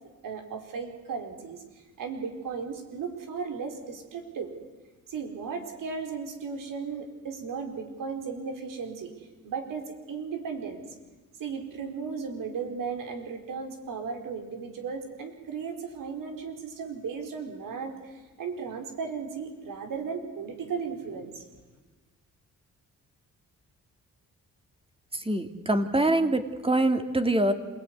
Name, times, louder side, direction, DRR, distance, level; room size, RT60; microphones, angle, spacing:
voice 1, 0.2-1.6 2.0-4.5 5.1-9.1 9.4-10.8 11.4-21.4, right 5 dB, 75° right, 5 dB, 4.6 m, -36 dB
voice 2, 25.1-27.5, right 1 dB, 15° right, 7 dB, 3.0 m, -24 dB
27.5 x 18.5 x 9.7 m, 1.3 s
cardioid pair, 70°, 32 cm